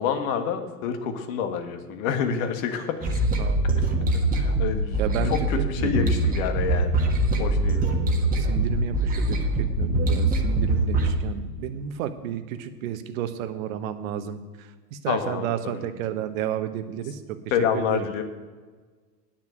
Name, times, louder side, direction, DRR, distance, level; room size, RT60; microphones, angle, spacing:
voice 1, 0.0-3.1 4.3-5.0 5.2-7.0 7.4-7.8 15.1-15.9 17.5-18.2, left 7 dB, 55° left, 7 dB, 1.6 m, -28 dB
sound 1, 3.0-11.1, right 2 dB, 15° right, 1.4 m, -23 dB
voice 2, 3.4-3.8 5.0-6.1 7.6-7.9 8.4-17.2 17.6-18.1, right 10 dB, 55° right, 9 dB, 1.1 m, -32 dB
10.0 x 6.2 x 7.8 m, 1.4 s
hypercardioid pair, 115°, 49 cm